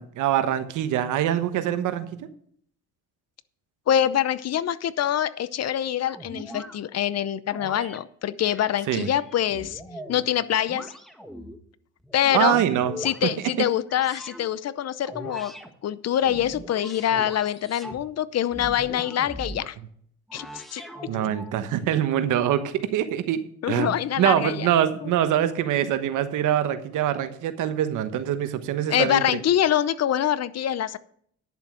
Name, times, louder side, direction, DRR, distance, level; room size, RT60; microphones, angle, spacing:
voice 1, 0.0-2.2 8.9-9.1 12.3-12.9 21.1-29.4, right 11 dB, 85° right, 11 dB, 1.2 m, -24 dB
voice 2, 3.9-9.8 10.1-10.9 12.1-12.6 13.0-15.5 15.8-19.8 20.3-20.8 23.6-24.7 25.0-25.1 28.9-31.0, left 10 dB, 55° left, 17 dB, 0.7 m, -25 dB
sound 1, 6.1-6.8 7.5-8.0 8.4-10.2 10.7-11.6 12.0-13.2 13.9-14.5 15.0-15.7 16.2-18.0 18.5-19.7 20.3-21.5, equal, ahead, 1.5 m, -40 dB
10.5 x 7.1 x 6.1 m, 0.62 s
cardioid pair, 90°, 30 cm